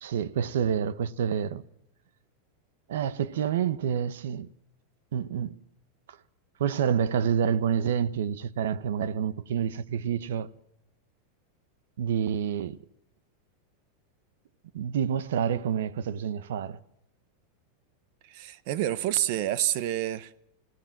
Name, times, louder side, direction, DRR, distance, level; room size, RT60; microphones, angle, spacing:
voice 1, 0.0-1.6 2.9-4.5 5.1-5.5 6.1-6.2 6.6-10.5 12.0-12.8 14.7-16.8, right 8 dB, 80° right, 1.0 m, -28 dB
voice 2, 18.2-20.3, right 12 dB, 45° right, 0.9 m, -28 dB
27.0 x 17.0 x 5.9 m
supercardioid pair, 175°, 0 cm